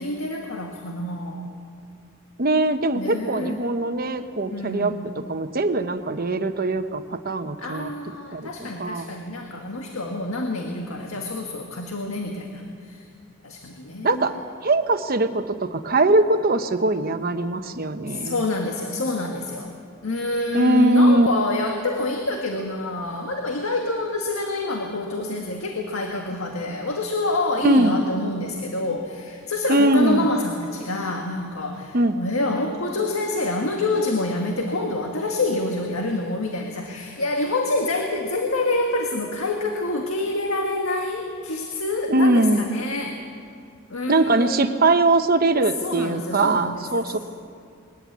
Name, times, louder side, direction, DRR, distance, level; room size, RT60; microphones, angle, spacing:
voice 1, 0.0-1.6 2.9-3.6 4.5-5.1 7.6-13.1 13.4-14.3 18.1-19.7 20.0-43.2 43.9-44.8 45.5-47.2, left 2 dB, 85° left, 2 dB, 1.7 m, -27 dB
voice 2, 2.4-4.9 5.3-7.9 8.3-8.5 8.8-9.1 14.0-18.4 20.5-21.3 27.6-27.9 29.7-30.3 31.9-32.2 42.1-42.7 44.1-47.2, right 2 dB, 45° right, 9 dB, 1.0 m, -21 dB
21.5 x 14.5 x 9.4 m, 2.3 s
head